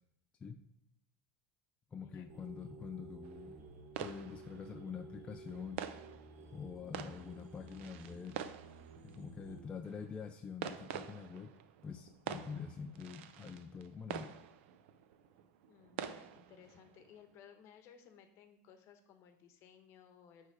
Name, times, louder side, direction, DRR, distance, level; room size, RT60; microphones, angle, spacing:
voice 1, 1.9-3.6 4.0-5.8 6.5-8.4 9.0-11.5 11.8-14.3, left 6 dB, 15° left, 4 dB, 0.4 m, -46 dB
sound 1, 2.3-9.6, right 3 dB, 40° right, 1.2 m, -54 dB
sound 2, 3.2-17.3, right 9 dB, 85° right, 0.5 m, -48 dB
voice 2, 15.7-20.5, left 7 dB, 45° left, 7 dB, 1.0 m, -60 dB
9.4 x 3.3 x 4.7 m, 0.77 s
supercardioid pair, 150°, 6 cm